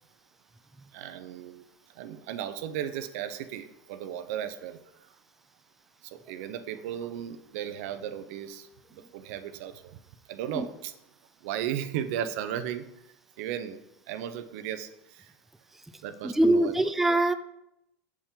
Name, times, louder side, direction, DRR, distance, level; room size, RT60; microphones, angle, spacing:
voice 1, 0.9-1.6 2.0-4.8 6.0-10.0 10.3-10.9 11.4-12.8 13.4-13.8 14.1-15.3 16.0-16.7, right 10 dB, 70° right, 11 dB, 0.6 m, -35 dB
voice 2, 16.2-17.3, right 1 dB, 5° right, 10 dB, 0.3 m, -23 dB
7.1 x 4.5 x 3.6 m, 0.82 s
supercardioid pair, 120°, 8 cm